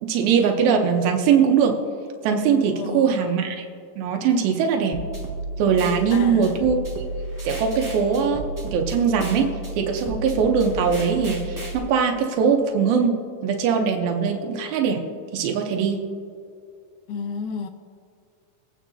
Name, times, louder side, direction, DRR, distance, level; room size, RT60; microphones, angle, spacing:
voice 1, 0.0-1.8 2.2-3.6 4.0-5.0 5.6-7.0 7.4-15.0 15.3-16.0, right 6 dB, 90° right, 3 dB, 2.7 m, -21 dB
voice 2, 2.7-3.4 6.1-6.7 17.1-17.7, left 5 dB, 90° left, 7 dB, 1.7 m, -32 dB
sound 1, 4.9-11.8, right 2 dB, 20° right, 0.5 m, -32 dB
23.5 x 9.1 x 2.7 m, 2.3 s
omnidirectional pair, 4.1 m